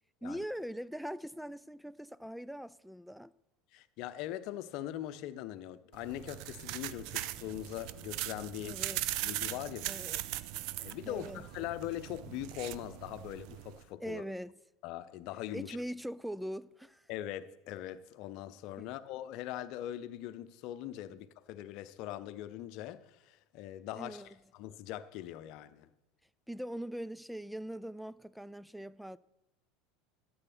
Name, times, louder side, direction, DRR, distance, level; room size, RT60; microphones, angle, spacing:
voice 1, 0.2-3.3 8.6-9.0 9.9-10.2 11.1-11.4 14.0-14.5 15.5-17.1 18.8-18.9 24.0-24.3 26.5-29.2, equal, ahead, 0.4 m, -41 dB
voice 2, 3.7-8.8 9.2-10.0 10.8-14.2 14.8-15.8 17.1-25.9, left 12 dB, 55° left, 0.7 m, -41 dB
sound 1, 5.9-13.8, right 15 dB, 55° right, 0.5 m, -40 dB
13.0 x 7.9 x 6.1 m
figure-of-eight pair, 75°, 0 cm